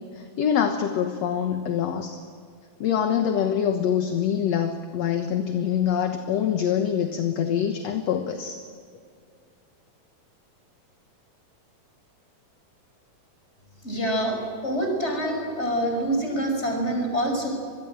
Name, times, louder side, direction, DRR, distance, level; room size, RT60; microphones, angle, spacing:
voice 1, 0.0-2.2 2.8-8.6, left 8 dB, 60° left, 6 dB, 2.1 m, -25 dB
voice 2, 13.8-17.5, right 1 dB, 20° left, 3 dB, 5.6 m, -26 dB
26.0 x 21.5 x 8.9 m, 2.2 s
omnidirectional pair, 3.8 m